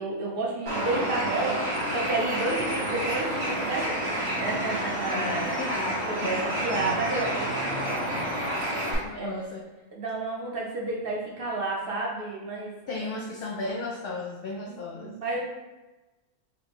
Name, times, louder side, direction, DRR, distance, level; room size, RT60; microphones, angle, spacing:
voice 1, 0.0-4.0 4.4-5.6 6.1-8.5 9.2-9.3 9.9-13.1 14.7-15.4, right 2 dB, 50° right, -2 dB, 0.9 m, -31 dB
Bird, 0.7-8.9, equal, 75° right, 1.6 m, -29 dB
voice 2, 5.1-7.0 9.0-9.6 12.9-15.4, left 2 dB, 65° left, -2 dB, 0.6 m, -35 dB
5.0 x 2.2 x 3.3 m, 1.1 s
omnidirectional pair, 1.4 m